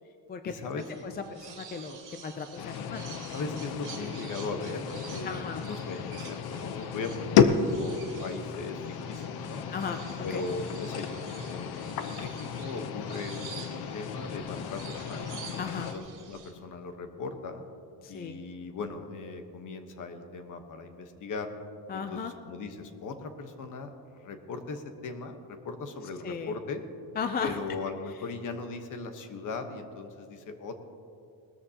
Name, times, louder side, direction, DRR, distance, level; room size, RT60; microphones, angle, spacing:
voice 1, 0.4-0.8 3.3-9.6 10.2-15.3 15.7-17.6 18.1-21.5 21.9-26.8 27.4-30.8, left 3 dB, 50° left, 6 dB, 1.1 m, -38 dB
sound 1, 0.8-16.5, right 7 dB, 50° right, 2.4 m, -49 dB
voice 2, 1.0-3.0 5.3-5.6 9.7-10.0 10.3-10.4 15.6-15.9 18.0-18.4 21.9-22.3 26.2-26.5 27.2-27.6, left 5 dB, 25° left, 7 dB, 0.4 m, -35 dB
sound 2, 2.6-15.9, left 7 dB, 70° left, 0.8 m, -32 dB
19.0 x 13.5 x 2.9 m, 2.6 s
cardioid pair, 175°, 39 cm